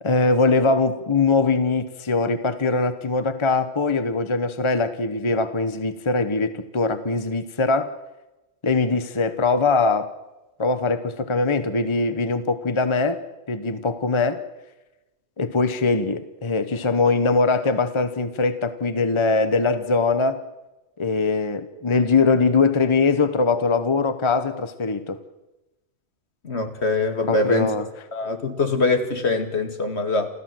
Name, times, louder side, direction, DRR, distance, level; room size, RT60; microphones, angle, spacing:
voice 1, 0.0-7.9 8.6-10.1 10.6-13.2 13.5-14.4 15.4-20.4 21.0-25.2 27.3-27.9, left 3 dB, 25° left, 11 dB, 1.0 m, -22 dB
voice 2, 26.4-27.7 28.1-30.3, left 3 dB, 65° left, 7 dB, 2.4 m, -23 dB
29.0 x 14.0 x 7.7 m, 1.0 s
omnidirectional pair, 1.2 m